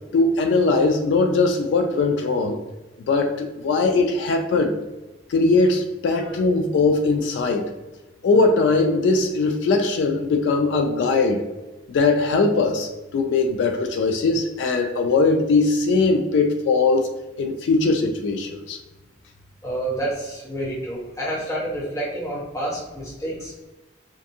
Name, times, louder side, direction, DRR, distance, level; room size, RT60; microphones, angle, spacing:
voice 1, 0.1-2.6 3.1-4.8 5.3-7.7 8.2-11.4 11.9-17.1 17.4-18.8, left 3 dB, 80° left, 4 dB, 0.3 m, -20 dB
voice 2, 19.6-23.7, right 1 dB, 20° left, -6 dB, 0.9 m, -29 dB
2.5 x 2.5 x 2.6 m, 1.1 s
head